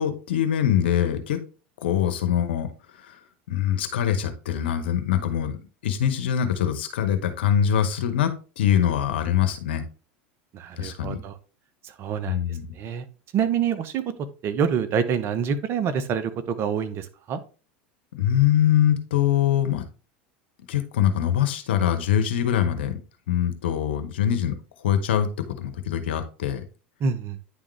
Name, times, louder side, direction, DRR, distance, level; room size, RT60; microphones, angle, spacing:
voice 1, 0.0-1.4 1.8-2.7 3.0-3.2 3.5-5.6 5.8-9.8 10.8-11.2 12.3-12.6 18.1-19.8 20.7-23.0 23.3-24.6 24.8-25.3 25.6-26.6, left 10 dB, 80° left, 8 dB, 1.0 m, -23 dB
voice 2, 10.5-11.4 11.8-12.4 12.7-13.1 13.3-14.0 14.4-17.4 27.0-27.4, right 7 dB, 45° right, 11 dB, 0.8 m, -26 dB
9.6 x 3.6 x 3.3 m, 0.35 s
hypercardioid pair, 90°, 6 cm